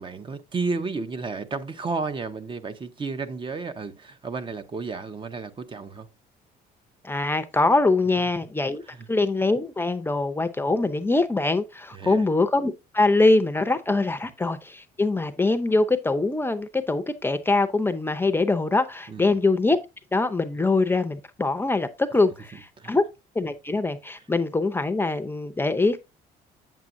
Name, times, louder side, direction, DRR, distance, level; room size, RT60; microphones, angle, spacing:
voice 1, 0.0-6.1 8.9-9.1 11.9-12.3 19.1-19.4 22.8-22.9, right 4 dB, 30° right, 0.8 m, -32 dB
voice 2, 7.0-8.8 9.1-19.8 20.1-23.0 23.3-26.0, left 3 dB, 15° left, 0.7 m, -23 dB
8.1 x 7.5 x 2.6 m
cardioid pair, 110°, 17 cm